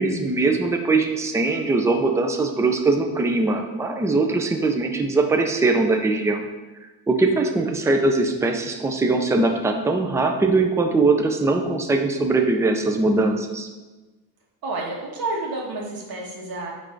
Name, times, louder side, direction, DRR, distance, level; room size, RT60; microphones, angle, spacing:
voice 1, 0.0-6.4 7.1-13.7, right 3 dB, 5° right, 4 dB, 0.3 m, -21 dB
voice 2, 14.6-16.7, right 2 dB, 50° right, -2 dB, 1.7 m, -30 dB
9.6 x 3.4 x 3.8 m, 1.2 s
cardioid pair, 150°, 44 cm